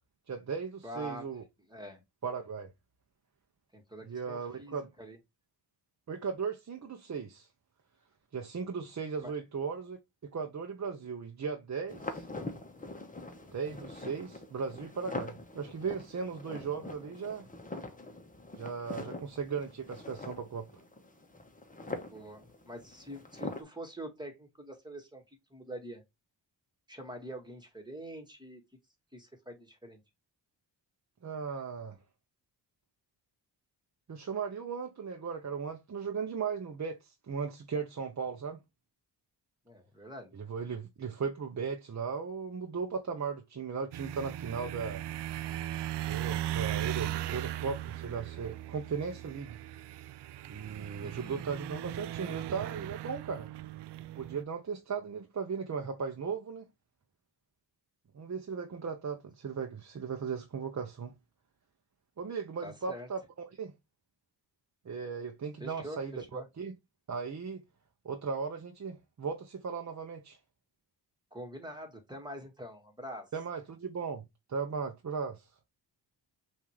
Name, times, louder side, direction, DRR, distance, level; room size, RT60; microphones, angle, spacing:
voice 1, 0.3-1.4 2.2-2.7 4.0-4.9 6.1-7.5 8.3-12.3 13.5-17.4 18.6-20.7 31.2-32.0 34.1-38.6 40.3-45.1 46.1-49.6 50.5-53.5 54.2-56.6 58.1-61.1 62.2-63.7 64.8-66.7 67.1-67.6 68.0-70.4 73.3-74.2 74.5-75.5, right 5 dB, 40° right, 0.8 m, -37 dB
voice 2, 0.8-1.3 1.7-2.0 3.7-5.2 9.2-9.3 22.1-25.2 25.5-26.0 26.9-28.6 29.1-30.0 39.7-40.3 51.0-51.4 62.6-63.1 65.6-66.5 71.3-73.3, equal, 10° right, 1.8 m, -45 dB
sound 1, 11.9-23.6, left 2 dB, 20° left, 1.2 m, -43 dB
sound 2, 43.9-54.4, right 13 dB, 70° right, 0.5 m, -38 dB
5.6 x 2.8 x 3.2 m
cardioid pair, 60°, 43 cm